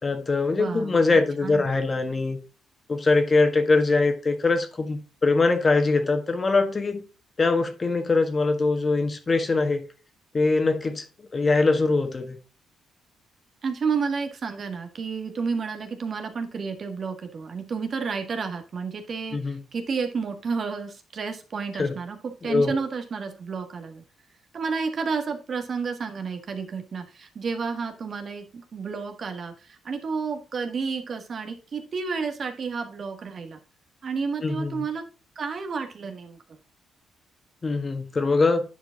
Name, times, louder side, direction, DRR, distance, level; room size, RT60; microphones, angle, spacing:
voice 1, 0.0-2.4 2.9-7.0 7.4-9.8 10.3-11.0 11.3-12.4 19.3-19.6 21.8-22.0 22.4-22.8 34.4-34.8 37.6-38.6, left 3 dB, 30° left, 1.6 m, -22 dB
voice 2, 0.5-1.6 13.6-24.0 24.5-33.6 34.0-35.0 35.3-36.4, right 5 dB, 50° right, 1.6 m, -31 dB
9.9 x 4.9 x 3.8 m
cardioid pair, 90°, 0 cm